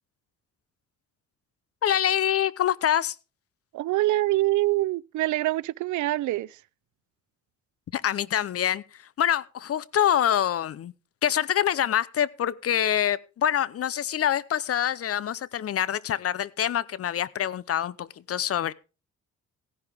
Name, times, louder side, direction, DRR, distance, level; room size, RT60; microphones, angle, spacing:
voice 1, 1.8-3.1 7.9-8.8 9.2-10.9 11.2-18.7, left 10 dB, 50° left, 0.7 m, -25 dB
voice 2, 3.7-6.6, right 17 dB, 75° right, 0.5 m, -25 dB
16.0 x 10.5 x 3.5 m
cardioid pair, 90°, 30 cm